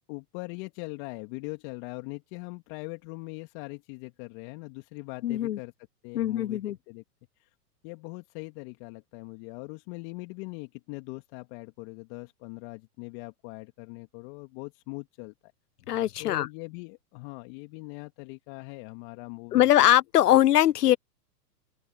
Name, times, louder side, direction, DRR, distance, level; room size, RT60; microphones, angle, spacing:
voice 1, 0.1-5.7 6.0-7.0 7.4-7.5 7.8-15.3 16.2-19.9 20.3-20.4, left 29 dB, 40° left, 2.4 m, -41 dB
voice 2, 5.2-5.6 6.1-6.8 15.9-16.5 19.5-21.0, left 13 dB, 70° left, 1.0 m, -21 dB
open air
hypercardioid pair, 115°, 48 cm